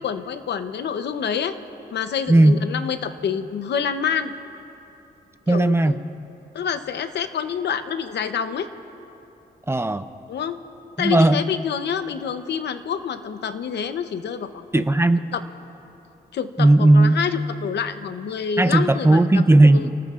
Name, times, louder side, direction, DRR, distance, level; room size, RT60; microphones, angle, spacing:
voice 1, 0.0-1.6 1.9-4.3 5.5-6.0 6.5-8.7 10.3-10.6 11.0-14.9 15.3-15.4 16.3-19.4 19.7-19.9, left 7 dB, 80° left, 10 dB, 0.8 m, -27 dB
voice 2, 2.3-2.6 5.5-6.0 9.7-10.0 11.0-11.4 14.7-15.2 16.6-17.2 18.6-19.9, right 2 dB, 15° right, 10 dB, 0.6 m, -16 dB
29.5 x 19.5 x 2.5 m, 2.8 s
cardioid pair, 95°, 18 cm